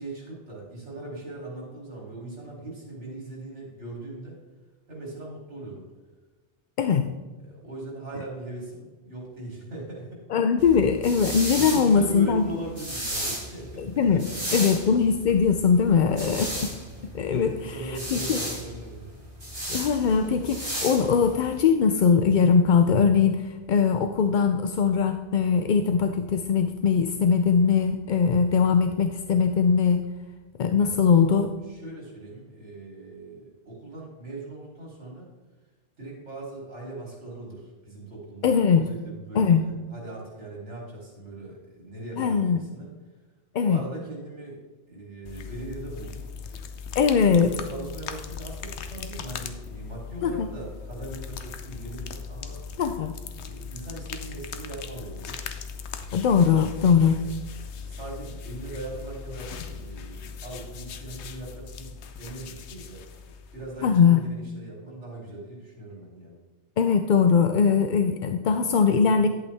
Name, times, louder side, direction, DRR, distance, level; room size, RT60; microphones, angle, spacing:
voice 1, 0.0-4.4 4.9-5.9 7.4-10.2 11.5-14.6 16.0-16.3 17.4-19.1 30.7-31.0 31.7-35.3 36.0-42.9 43.6-44.6 44.9-46.2 47.1-52.6 53.4-55.4 57.1-57.3 57.7-63.1 63.5-66.4, right 2 dB, 90° right, -3 dB, 3.5 m, -40 dB
voice 2, 10.3-12.4 13.8-14.3 14.5-16.7 17.0-17.7 18.1-18.4 19.7-30.0 30.6-31.6 38.4-38.9 39.3-39.6 42.2-42.6 43.5-43.8 46.9-47.5 50.2-50.5 52.8-53.1 56.1-57.2 63.8-64.2 66.8-69.3, left 6 dB, 55° left, 7 dB, 0.6 m, -21 dB
sound 1, 10.6-21.6, right 1 dB, 30° right, 3.2 m, -34 dB
sound 2, 45.3-64.2, left 6 dB, 75° left, 1.0 m, -39 dB
11.5 x 8.3 x 3.4 m, 1.3 s
omnidirectional pair, 1.2 m